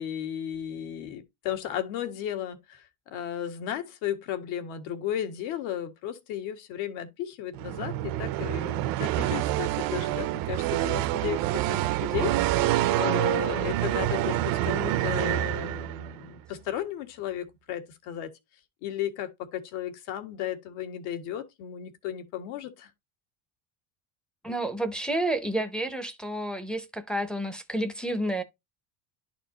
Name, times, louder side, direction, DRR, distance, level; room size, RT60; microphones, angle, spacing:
voice 1, 0.0-11.4 11.7-12.7 12.9-18.3 18.8-22.9, left 10 dB, 70° left, 1.8 m, -34 dB
sound 1, 7.5-16.2, right 15 dB, 45° right, 0.5 m, -27 dB
voice 2, 24.4-28.4, right 1 dB, ahead, 0.5 m, -30 dB
12.0 x 4.3 x 2.8 m
cardioid pair, 170°, 49 cm